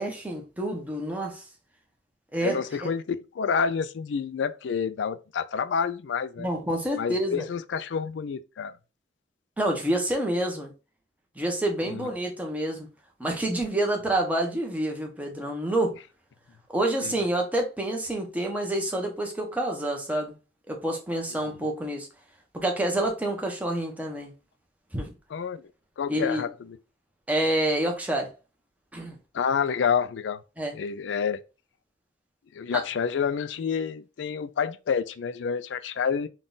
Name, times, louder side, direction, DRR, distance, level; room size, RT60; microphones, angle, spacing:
voice 1, 0.0-1.4 2.3-2.9 6.4-7.5 9.6-10.7 11.4-12.9 13.2-16.0 16.7-20.3 20.7-22.1 22.5-24.3 24.9-25.1 26.1-26.4 27.3-28.3 28.9-29.2 30.6-30.7 32.7-32.8, right 1 dB, 10° right, 0.9 m, -28 dB
voice 2, 2.4-6.5 7.0-8.8 11.9-12.1 17.0-17.1 25.3-25.6 26.0-26.8 29.3-30.4 30.7-31.4 32.5-36.3, left 6 dB, 85° left, 0.4 m, -28 dB
3.7 x 2.3 x 3.9 m
head